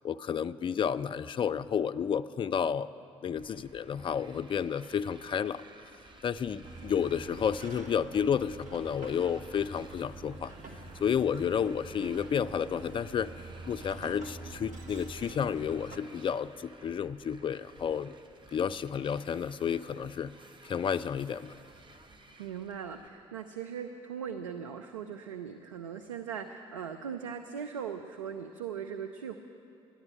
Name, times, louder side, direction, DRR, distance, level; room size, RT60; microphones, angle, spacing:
voice 1, 0.0-2.9 3.2-5.6 6.2-10.5 11.0-18.1 18.5-20.3 20.6-21.5, left 7 dB, 30° left, 13 dB, 0.4 m, -31 dB
Motorcycle, 3.3-23.1, right 2 dB, 30° right, 1.2 m, -55 dB
sound 1, 6.6-16.0, right 2 dB, 50° right, 1.7 m, -46 dB
voice 2, 22.4-29.4, right 7 dB, 85° right, 6 dB, 0.5 m, -39 dB
13.0 x 10.5 x 7.5 m, 2.9 s
figure-of-eight pair, 50°, 16 cm